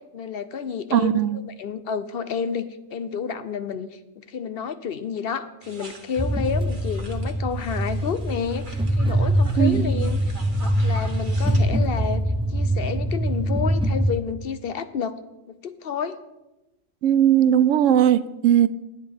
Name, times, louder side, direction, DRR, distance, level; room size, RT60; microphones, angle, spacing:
voice 1, 0.1-15.2 15.5-16.2, left 6 dB, 55° left, 12 dB, 0.8 m, -30 dB
voice 2, 0.9-1.4 9.6-10.1 17.0-18.7, right 10 dB, 75° right, 15 dB, 0.9 m, -19 dB
sound 1, 5.6-11.7, right 2 dB, 40° right, 1.4 m, -45 dB
sound 2, 6.2-14.1, right 1 dB, 5° right, 0.4 m, -23 dB
17.0 x 10.0 x 3.6 m, 0.98 s
omnidirectional pair, 1.3 m